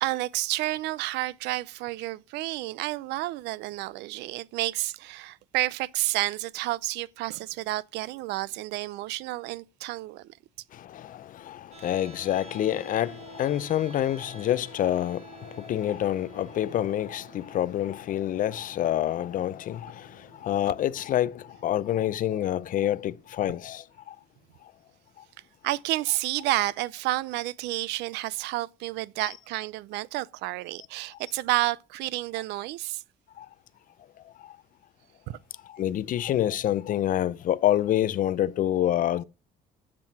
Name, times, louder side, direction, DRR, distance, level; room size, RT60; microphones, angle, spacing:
voice 1, 0.0-10.3 25.6-33.0 35.3-35.4 35.8-35.9, right 17 dB, 90° right, 0.5 m, -30 dB
voice 2, 10.9-20.1 20.4-24.1 33.4-33.5 35.7-39.2, left 12 dB, 55° left, 0.5 m, -27 dB
sound 1, 11.7-23.7, right 8 dB, 45° right, 4.9 m, -52 dB
7.6 x 7.5 x 5.9 m
cardioid pair, 110°, 17 cm